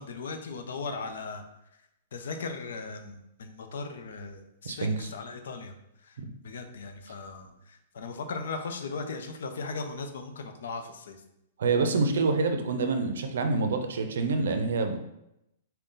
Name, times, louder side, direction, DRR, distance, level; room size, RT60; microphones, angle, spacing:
voice 1, 0.0-1.5 2.1-5.8 6.0-11.2, left 4 dB, 80° left, 6 dB, 0.5 m, -38 dB
voice 2, 4.6-5.1 6.2-6.3 11.6-15.0, right 3 dB, 80° right, 7 dB, 0.5 m, -27 dB
3.8 x 2.2 x 3.7 m, 0.84 s
hypercardioid pair, 165°, 0 cm